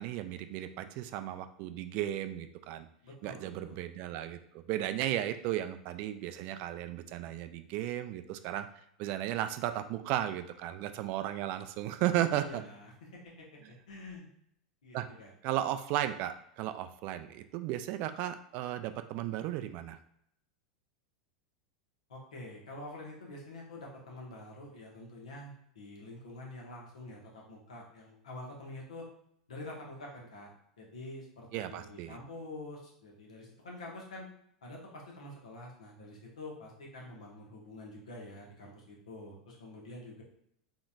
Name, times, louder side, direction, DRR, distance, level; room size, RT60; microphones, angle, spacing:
voice 1, 0.0-2.9 3.2-12.6 14.9-15.1 15.4-20.0 31.5-32.2, right 12 dB, 45° right, 10 dB, 0.3 m, -35 dB
voice 2, 3.0-3.8 12.3-14.3 14.8-15.3 22.1-29.1 29.5-30.5 30.8-34.3 34.6-40.2, left 1 dB, 70° left, -2 dB, 1.2 m, -47 dB
4.0 x 3.8 x 2.5 m, 0.72 s
figure-of-eight pair, 85°, 4 cm